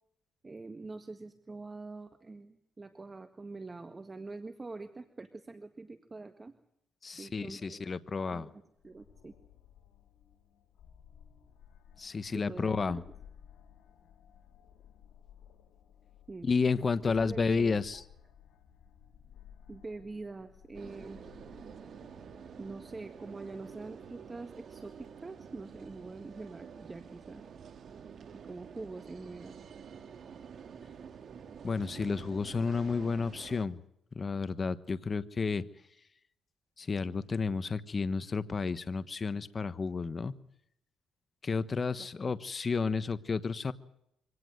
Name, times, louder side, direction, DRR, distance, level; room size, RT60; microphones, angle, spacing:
voice 1, 0.4-6.5 7.2-7.8 8.3-8.5 8.8-9.3 12.3-13.0 16.3-16.5 17.0-18.0 19.7-21.2 22.6-27.4 28.5-29.5 42.0-42.1, right 3 dB, 25° right, 8 dB, 1.7 m, -45 dB
voice 2, 7.0-8.5 12.0-13.0 16.4-18.0 31.6-33.8 34.1-35.6 36.8-40.3 41.4-43.7, left 4 dB, 35° left, 13 dB, 1.2 m, -31 dB
sound 1, 8.7-23.3, left 9 dB, 75° left, 2.9 m, -57 dB
sound 2, 20.7-33.7, right 7 dB, 55° right, 2.2 m, -49 dB
24.5 x 18.0 x 7.9 m, 0.76 s
cardioid pair, 90°, 0 cm